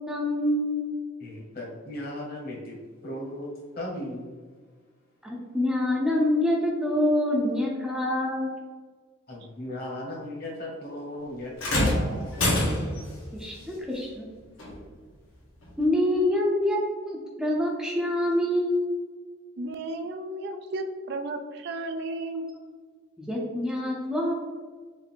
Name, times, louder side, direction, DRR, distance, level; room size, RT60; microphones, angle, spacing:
voice 1, 0.1-0.9 5.5-8.5 13.3-14.3 15.8-18.8 23.3-24.3, left 1 dB, 5° right, -3 dB, 0.6 m, -26 dB
voice 2, 1.2-2.8 3.0-4.3 7.3-7.4 9.3-11.5 11.8-12.3, left 1 dB, 45° left, -3 dB, 1.2 m, -36 dB
sound 1, 11.6-13.1 14.6-14.7 15.6-15.7, left 1 dB, 75° left, 1.3 m, -25 dB
voice 3, 19.6-22.5, right 2 dB, 50° right, 7 dB, 0.3 m, -33 dB
4.6 x 2.5 x 3.5 m, 1.5 s
head